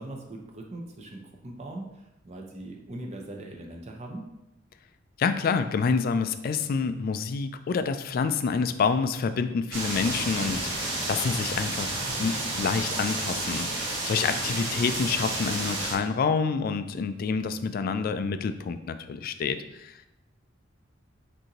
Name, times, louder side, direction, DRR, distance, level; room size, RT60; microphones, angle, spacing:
voice 1, 0.0-4.2 14.0-14.4, right 1 dB, 35° right, 1 dB, 0.6 m, -40 dB
voice 2, 5.2-20.1, left 5 dB, 50° left, 10 dB, 0.3 m, -28 dB
sound 1, 9.7-15.9, right 2 dB, 85° right, 1.1 m, -31 dB
6.3 x 2.6 x 2.9 m, 0.91 s
head